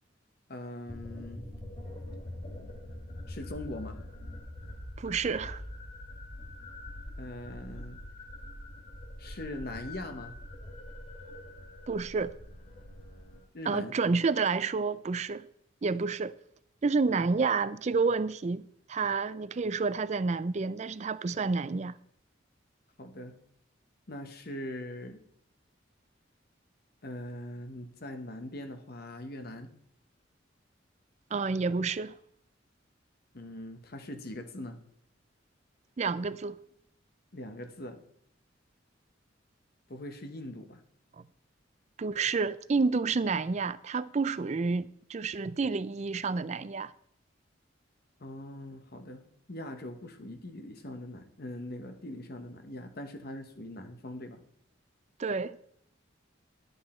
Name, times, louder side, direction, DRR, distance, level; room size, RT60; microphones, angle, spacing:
voice 1, 0.5-1.5 3.3-4.0 7.2-8.0 9.2-10.3 13.5-13.9 17.1-17.3 23.0-23.4 24.1-25.2 27.0-29.7 33.3-34.8 37.3-38.0 39.9-40.8 48.2-49.2 49.5-54.4, left 1 dB, 55° left, 1.0 m, -41 dB
sound 1, 0.9-13.4, left 1 dB, 35° left, 2.4 m, -44 dB
voice 2, 5.0-5.6 11.9-12.3 13.7-15.5 15.8-16.4 16.8-22.0 31.3-32.2 36.0-36.6 41.2-41.3 42.0-46.9 55.2-55.6, right 4 dB, 35° right, 0.4 m, -29 dB
11.5 x 8.1 x 4.3 m
head